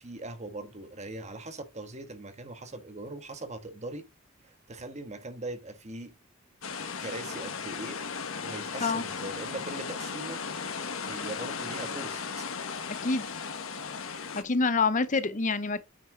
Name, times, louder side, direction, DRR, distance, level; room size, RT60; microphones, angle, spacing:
voice 1, 0.0-4.1 4.4-6.1 7.0-8.0 8.4-10.4 11.1-12.5, right 2 dB, 35° right, 1.4 m, -40 dB
sound 1, 6.6-14.4, left 5 dB, 90° left, 1.5 m, -36 dB
voice 2, 14.4-15.8, left 4 dB, 40° left, 0.7 m, -26 dB
8.9 x 6.0 x 3.7 m
head